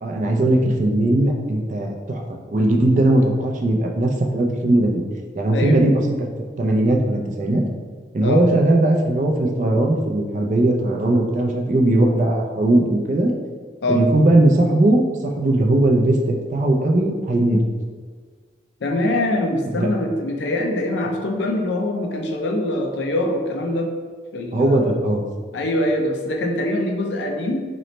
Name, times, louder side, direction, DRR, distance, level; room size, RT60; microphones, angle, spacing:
voice 1, 0.0-2.2 2.5-5.0 5.3-6.0 6.6-7.7 8.1-13.3 13.9-16.2 16.5-17.6 19.7-19.9 24.5-25.2, right 1 dB, 45° right, 1 dB, 0.3 m, -18 dB
voice 2, 18.8-23.9 24.3-24.9 25.5-27.6, left 1 dB, 85° left, 2 dB, 0.5 m, -23 dB
3.0 x 2.0 x 3.9 m, 1.5 s
head